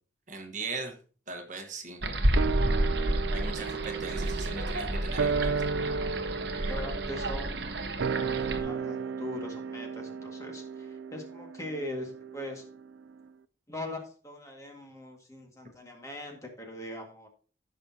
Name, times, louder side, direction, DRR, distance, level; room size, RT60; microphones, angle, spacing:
voice 1, 0.3-1.0 1.3-2.0 3.3-5.6 6.6-6.7, right 3 dB, 40° right, 3 dB, 1.3 m, -39 dB
sound 1, 2.0-8.6, right 1 dB, 60° right, 1.1 m, -30 dB
sound 2, 2.4-13.0 13.2-13.3, right 5 dB, 85° right, 0.4 m, -34 dB
voice 2, 6.7-8.0 8.4-12.6 13.7-17.3, left 1 dB, 15° left, 2 dB, 1.9 m, -41 dB
15.0 x 6.3 x 2.8 m, 0.40 s
head